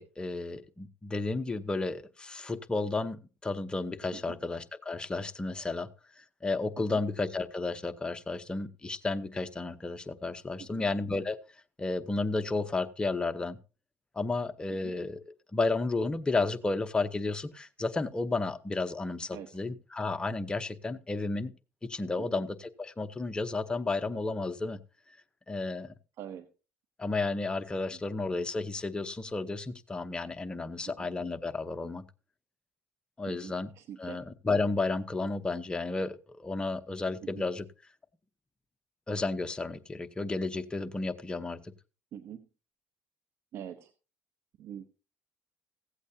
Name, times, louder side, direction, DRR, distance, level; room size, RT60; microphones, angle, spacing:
voice 1, 0.0-5.9 6.2-11.4 11.8-13.6 14.1-21.5 21.8-24.8 25.1-25.2 25.5-25.9 27.0-32.0 33.2-33.7 34.0-37.6 39.1-41.7, left 3 dB, 20° left, 9 dB, 0.8 m, -32 dB
voice 2, 33.3-34.2 37.2-37.4 42.1-42.4 43.5-43.9 44.6-44.9, right 9 dB, 65° right, 11 dB, 0.8 m, -44 dB
15.5 x 8.2 x 2.8 m, 0.32 s
supercardioid pair, 90°, 5 cm